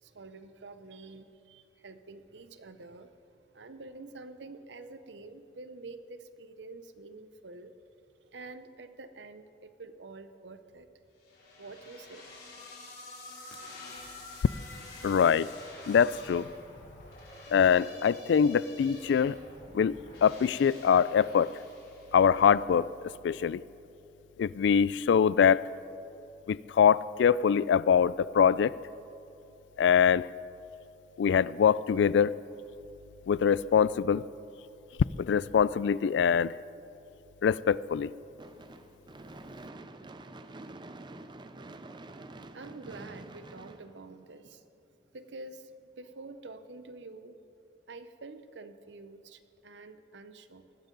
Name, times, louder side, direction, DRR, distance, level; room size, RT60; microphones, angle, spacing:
voice 1, 0.0-7.7 8.3-10.9 11.6-12.3 13.5-13.6 15.0-15.2 42.5-44.6 45.1-45.7 46.0-47.4 47.9-50.8, right 3 dB, 80° right, 10 dB, 0.8 m, -47 dB
sound 1, 11.2-22.5, left 2 dB, 60° left, 4.2 m, -48 dB
voice 2, 15.0-15.5 15.9-16.5 17.5-19.4 19.7-21.5 22.1-22.9 23.2-23.6 24.4-25.7 26.5-28.8 29.8-30.3 31.2-32.4 33.3-34.2 35.2-36.6 37.4-38.1, left 7 dB, 80° left, 20 dB, 0.3 m, -24 dB
Gunshot gunfire / Fireworks, 38.4-44.6, right 2 dB, 25° right, 0.5 m, -47 dB
19.5 x 14.5 x 3.9 m, 2.8 s
head